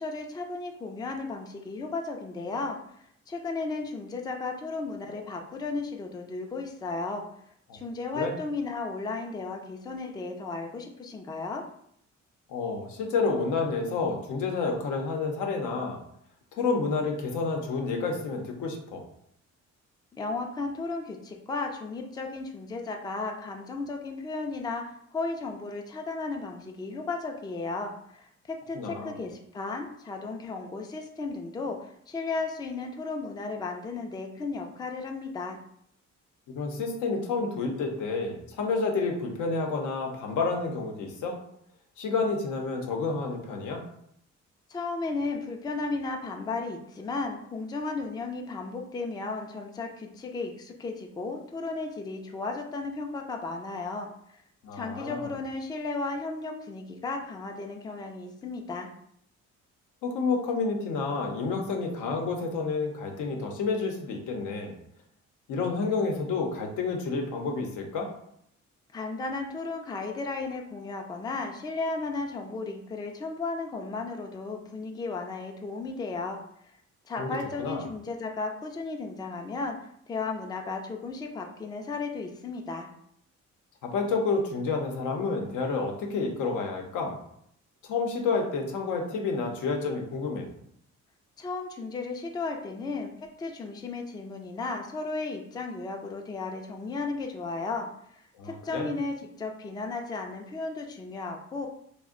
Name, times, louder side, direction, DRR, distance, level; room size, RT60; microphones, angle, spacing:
voice 1, 0.0-2.8 3.3-7.2 7.7-11.6 20.1-35.6 44.7-54.4 54.7-58.9 68.9-76.4 77.1-79.8 80.1-82.9 91.4-93.1 93.4-101.7, left 3 dB, 15° left, 3 dB, 0.3 m, -34 dB
voice 2, 12.5-16.0 16.5-19.0 28.7-29.2 36.5-41.4 42.0-43.8 54.6-55.3 60.0-64.7 65.5-68.1 77.2-77.8 83.8-87.2 87.8-90.5 98.4-98.9, left 4 dB, 80° left, 2 dB, 0.7 m, -29 dB
2.5 x 2.1 x 3.6 m, 0.71 s
cardioid pair, 90°, 30 cm